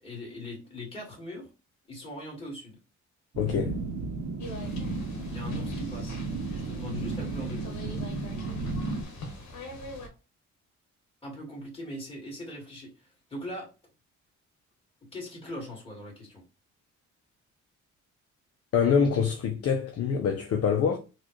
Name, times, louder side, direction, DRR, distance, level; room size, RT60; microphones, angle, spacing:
voice 1, 0.0-1.5 1.9-2.8 5.3-6.2 6.6-7.8 11.2-13.7 15.1-16.4, left 1 dB, 20° left, 2.1 m, -40 dB
sound 1, 3.3-9.0, right 3 dB, 70° right, 0.8 m, -33 dB
voice 2, 3.4-3.8 18.7-21.0, left 6 dB, 55° left, 0.6 m, -25 dB
sound 2, 4.4-10.1, left 1 dB, 70° left, 1.1 m, -43 dB
4.0 x 2.3 x 3.2 m
cardioid pair, 90°, 30 cm